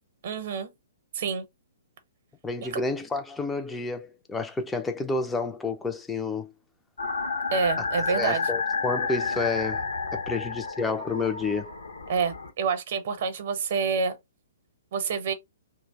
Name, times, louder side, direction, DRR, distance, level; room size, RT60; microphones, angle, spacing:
voice 1, 0.2-0.7 1.1-1.5 2.6-2.8 7.5-8.5 12.1-14.1 14.9-15.3, right 5 dB, 50° right, 0.7 m, -27 dB
voice 2, 2.4-6.5 8.1-9.8 10.1-11.7, left 3 dB, 10° left, 0.3 m, -30 dB
sound 1, 7.0-12.5, left 4 dB, 70° left, 0.6 m, -30 dB
2.4 x 2.0 x 3.4 m
figure-of-eight pair, 120°, 0 cm